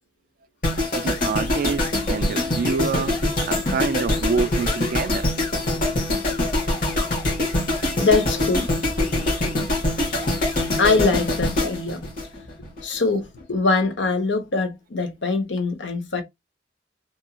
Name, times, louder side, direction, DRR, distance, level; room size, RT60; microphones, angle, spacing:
sound 1, 0.6-12.8 13.1-13.4, left 1 dB, 50° left, 1.3 m, -24 dB
voice 1, 0.9-3.2 3.5-5.3, right 5 dB, 50° right, 0.3 m, -27 dB
voice 2, 8.0-8.7 10.8-12.0 12.8-16.2, left 4 dB, 90° left, 0.8 m, -22 dB
2.8 x 2.6 x 2.3 m
head